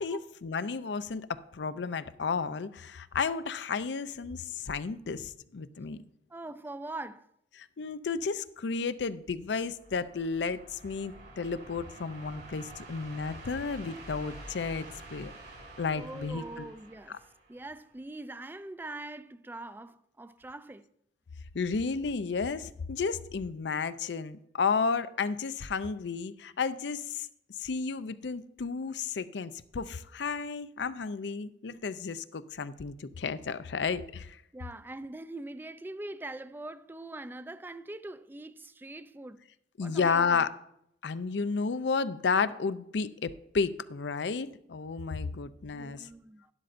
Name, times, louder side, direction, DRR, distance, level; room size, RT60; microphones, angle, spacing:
voice 1, 0.0-6.0 7.6-15.3 15.8-16.7 17.1-17.2 21.5-27.3 27.6-34.4 39.8-40.5 41.0-46.1, left 5 dB, 75° left, 0.5 m, -32 dB
voice 2, 6.3-7.3 15.9-17.2 17.5-20.8 34.5-39.4 39.8-40.5 45.7-46.5, right 2 dB, 10° right, 0.3 m, -43 dB
sound 1, 9.5-18.0, right 2 dB, 80° right, 4.3 m, -48 dB
12.0 x 11.5 x 2.6 m
head